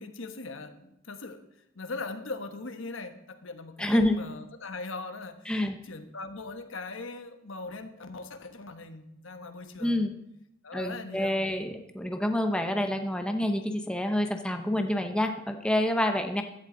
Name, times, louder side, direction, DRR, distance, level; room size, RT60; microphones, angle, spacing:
voice 1, 0.0-1.5 1.7-10.0 10.6-11.4, left 3 dB, 75° left, 8 dB, 1.2 m, -40 dB
voice 2, 3.8-4.2 5.5-5.8 9.8-10.2 10.7-16.4, left 1 dB, 5° left, 5 dB, 0.9 m, -27 dB
16.0 x 11.5 x 3.9 m, 0.83 s
head